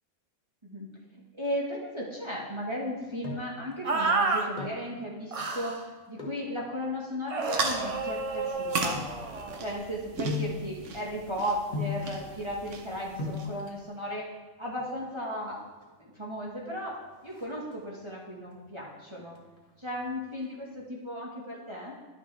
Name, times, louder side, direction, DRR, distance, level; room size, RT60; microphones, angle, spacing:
voice 1, 1.4-9.0 9.6-14.2 14.6-15.6 16.0-17.0 17.2-19.4 19.8-22.0, equal, 20° right, -4 dB, 1.3 m, -35 dB
sound 1, 2.8-3.6 4.4-4.9 6.1-6.5 7.2-9.6 10.2-10.6 11.7-12.1 12.9-13.0 13.2-13.5 14.7-15.2 15.5-15.6 15.8-16.0 16.3-16.7 17.0-18.1 18.5-18.9 19.3-20.5 20.7-20.8, left 4 dB, 30° left, 1.7 m, -37 dB
sound 2, 3.8-4.5 5.3-5.8 7.3-9.6, right 4 dB, 45° right, 0.4 m, -30 dB
sound 3, 7.4-13.7, right 3 dB, 60° right, 1.2 m, -37 dB
11.0 x 6.6 x 3.4 m, 1.2 s
omnidirectional pair, 1.5 m